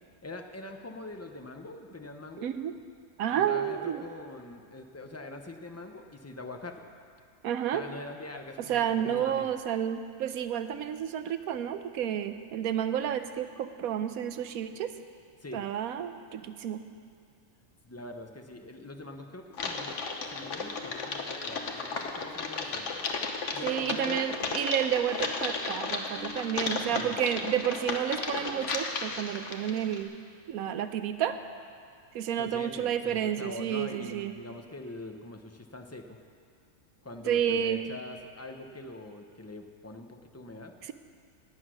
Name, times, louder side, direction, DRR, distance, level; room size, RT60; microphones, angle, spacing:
voice 1, 0.2-2.5 3.3-6.9 7.7-9.5 15.4-15.6 17.8-20.0 20.3-22.8 23.5-24.3 26.9-27.4 32.4-36.2 37.0-40.9, left 2 dB, 15° left, 4 dB, 0.5 m, -43 dB
voice 2, 2.4-2.7 3.2-4.0 7.4-7.8 8.7-14.9 15.5-16.8 23.6-30.1 30.5-31.4 32.1-34.3 37.3-37.8 40.8-40.9, right 9 dB, 80° right, 10 dB, 1.1 m, -30 dB
Typing, 19.5-30.0, left 4 dB, 60° left, 1.4 m, -34 dB
19.0 x 8.1 x 6.3 m, 2.2 s
omnidirectional pair, 1.5 m